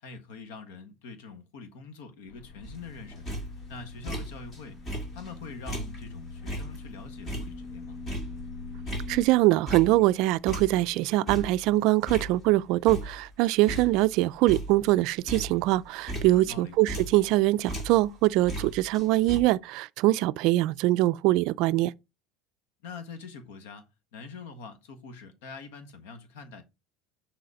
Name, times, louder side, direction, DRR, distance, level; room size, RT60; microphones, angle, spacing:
voice 1, 0.0-3.2 3.7-4.8 5.1-8.0 16.3-16.8 22.8-23.9 24.1-26.6, left 4 dB, 80° left, 1.5 m, -44 dB
sound 1, 2.3-9.3, left 3 dB, 45° left, 1.0 m, -43 dB
sound 2, 2.6-4.6 4.9-10.2 10.5-12.6 12.9-13.4 13.7-17.4 17.7-19.4, right 1 dB, 20° left, 2.0 m, -37 dB
voice 2, 9.1-21.9, right 17 dB, 50° right, 0.3 m, -23 dB
6.9 x 4.0 x 5.0 m
cardioid pair, 165°, 0 cm